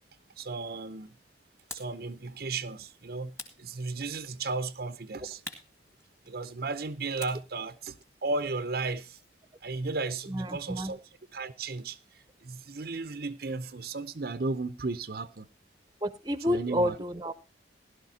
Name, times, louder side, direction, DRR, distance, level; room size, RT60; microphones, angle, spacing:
voice 1, 0.4-1.1 1.7-5.4 6.3-9.2 9.6-11.0 11.3-15.5 16.5-17.0, right 3 dB, 55° right, 0.7 m, -35 dB
sound 1, 1.7-2.0 3.4-4.3 5.4-6.6 7.2-9.4, left 2 dB, 15° left, 1.8 m, -47 dB
voice 2, 10.3-10.9 16.0-17.3, equal, 20° right, 0.8 m, -30 dB
16.0 x 12.0 x 2.8 m
head